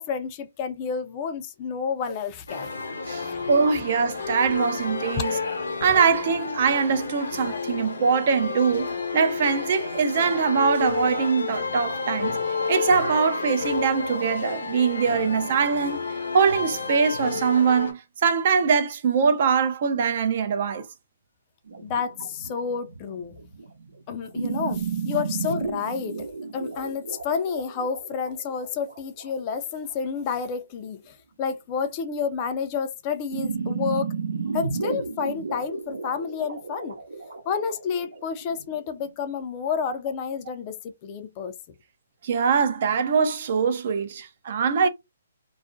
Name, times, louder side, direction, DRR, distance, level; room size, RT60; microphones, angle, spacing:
voice 1, 0.0-2.7 3.3-3.4 21.8-23.3 24.1-26.2 26.5-34.1 34.5-37.0 37.5-40.8 41.0-41.5, left 6 dB, 30° left, 0.4 m, -30 dB
sound 1, 2.5-17.9, left 4 dB, 80° left, 0.8 m, -30 dB
voice 2, 3.1-5.4 5.8-12.4 12.7-16.0 16.3-20.9 42.2-44.9, right 6 dB, 50° right, 0.5 m, -23 dB
sound 2, 21.7-29.9 33.3-39.1, right 5 dB, 85° right, 0.8 m, -33 dB
2.3 x 2.1 x 2.5 m
hypercardioid pair, 155°, 0 cm